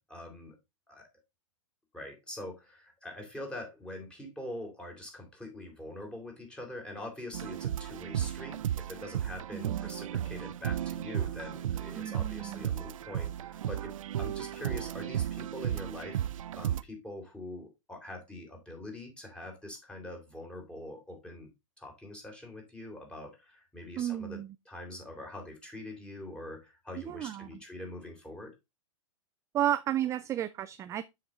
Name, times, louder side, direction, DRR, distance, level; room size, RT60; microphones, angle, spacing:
voice 1, 0.1-0.6 0.9-1.1 1.9-16.3 16.5-21.5 21.8-24.4 24.7-28.5, left 1 dB, 5° left, 3.4 m, -44 dB
sound 1, 7.3-16.8, right 11 dB, 70° right, 0.5 m, -34 dB
voice 2, 9.5-9.9 11.9-12.7 24.0-24.5 26.9-27.5 29.5-31.1, right 12 dB, 15° right, 0.3 m, -33 dB
7.6 x 6.1 x 3.8 m
hypercardioid pair, 120°, 17 cm